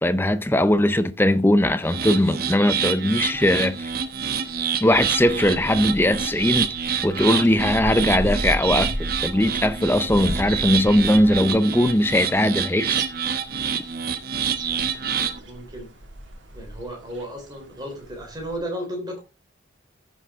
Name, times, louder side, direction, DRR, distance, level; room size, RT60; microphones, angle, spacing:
voice 1, 0.0-3.9 4.8-6.7 7.0-13.0, left 1 dB, 10° left, 0.5 m, -20 dB
sound 1, 1.8-15.4, right 7 dB, 50° right, 1.0 m, -27 dB
sound 2, 3.1-18.6, equal, 80° right, 2.3 m, -36 dB
voice 2, 14.7-15.9 16.5-19.2, equal, 20° right, 3.3 m, -35 dB
14.0 x 6.3 x 3.6 m
head